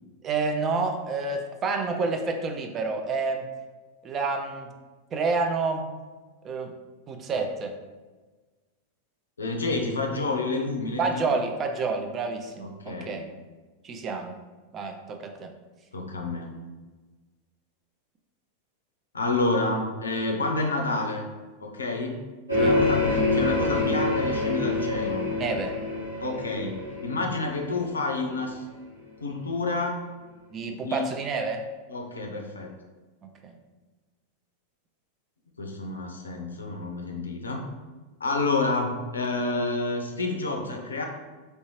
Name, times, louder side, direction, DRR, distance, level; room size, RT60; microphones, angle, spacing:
voice 1, 0.2-3.5 4.0-4.7 5.1-5.9 6.4-6.7 7.1-7.8 11.0-13.3 13.8-14.4 14.7-15.5 22.6-22.7 25.4-25.8 30.5-31.7 33.2-33.6, right 4 dB, 25° right, 5 dB, 0.4 m, -29 dB
voice 2, 9.4-11.2 12.6-13.2 15.9-16.5 19.1-21.2 21.6-22.2 22.5-25.2 26.2-26.8 27.0-28.6 29.2-30.0 30.6-31.1 31.9-32.7 35.6-37.6 38.2-41.0, left 2 dB, 75° left, 1 dB, 0.5 m, -29 dB
sound 1, 22.5-28.1, left 2 dB, 90° right, 1.4 m, -26 dB
3.2 x 2.6 x 3.0 m, 1.3 s
figure-of-eight pair, 90°, 0 cm